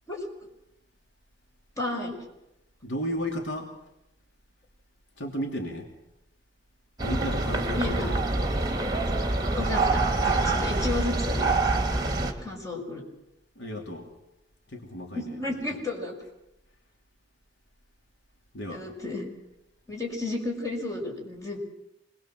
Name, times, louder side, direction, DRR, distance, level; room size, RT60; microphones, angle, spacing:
voice 1, 1.8-2.2 7.8-8.1 9.6-11.4 12.4-13.0 15.1-16.1 18.7-19.3 19.9-21.6, left 2 dB, 20° left, 0 dB, 5.7 m, -32 dB
voice 2, 2.8-3.7 5.2-5.9 7.0-8.2 13.6-14.1 14.7-15.8 18.5-18.8, equal, 80° left, 1 dB, 3.0 m, -34 dB
sound 1, 7.0-12.3, right 2 dB, 20° right, 2.4 m, -26 dB
26.0 x 21.0 x 7.6 m, 0.89 s
head